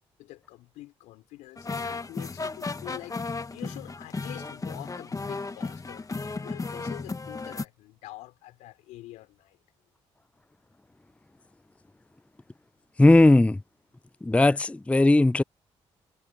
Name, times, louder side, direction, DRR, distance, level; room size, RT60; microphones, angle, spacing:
voice 1, 0.2-3.2 3.5-6.1 6.4-9.6, left 17 dB, 85° left, 4.5 m, -46 dB
sound 1, 1.6-7.6, left 3 dB, 30° left, 1.4 m, -34 dB
voice 2, 13.0-13.6 14.2-15.4, left 2 dB, 10° left, 0.5 m, -18 dB
supercardioid pair, 55°, 12 cm